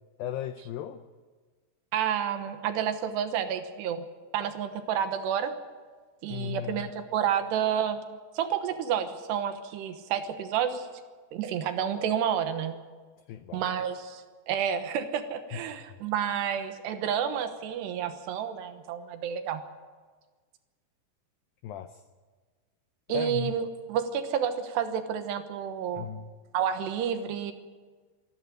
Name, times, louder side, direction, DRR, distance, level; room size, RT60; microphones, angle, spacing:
voice 1, 0.2-1.0 6.3-6.9 13.3-13.6 15.5-15.6 21.6-22.0 23.1-23.6 26.0-26.3, left 10 dB, 85° left, 10 dB, 2.0 m, -36 dB
voice 2, 1.9-4.0 4.3-5.5 6.2-8.0 8.3-10.9 11.3-12.7 13.5-19.6 23.1-26.1 26.5-27.5, right 8 dB, 75° right, 8 dB, 3.2 m, -30 dB
25.5 x 12.0 x 9.3 m, 1.4 s
omnidirectional pair, 5.0 m